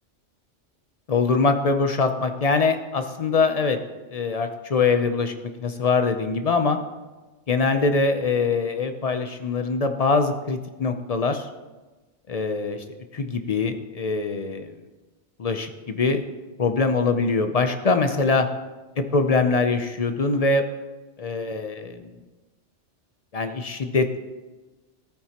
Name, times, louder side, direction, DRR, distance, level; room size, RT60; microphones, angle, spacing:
voice 1, 1.1-3.8 4.1-5.3 5.6-6.8 7.5-11.4 12.3-12.8 13.1-14.7 15.4-16.2 16.6-18.5 19.0-20.6 21.2-22.1 23.3-24.2, left 4 dB, 45° left, 8 dB, 0.5 m, -23 dB
14.0 x 9.1 x 2.9 m, 1.2 s
omnidirectional pair, 1.2 m